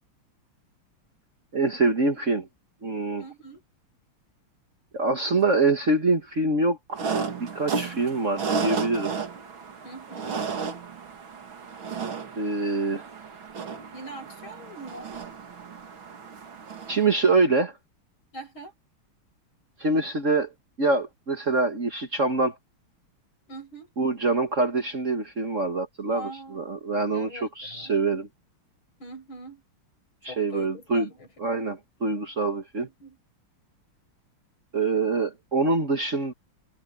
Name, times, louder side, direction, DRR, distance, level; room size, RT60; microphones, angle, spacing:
voice 1, 1.5-2.5 2.8-3.2 4.9-7.3 7.5-9.1 12.4-13.0 16.9-17.7 19.8-20.5 20.8-22.6 24.0-28.3 30.2-31.1 31.4-32.9 34.7-36.3, right 3 dB, 35° right, 1.9 m, -25 dB
voice 2, 3.2-3.6 7.8-8.4 9.8-10.5 13.9-15.2 18.3-18.7 23.5-23.9 26.1-26.7 27.1-27.9 29.0-29.6 30.3-31.3 32.8-33.2, right 1 dB, 65° left, 8.8 m, -43 dB
sound 1, 6.9-17.3, right 5 dB, 65° right, 3.0 m, -33 dB
omnidirectional pair, 2.4 m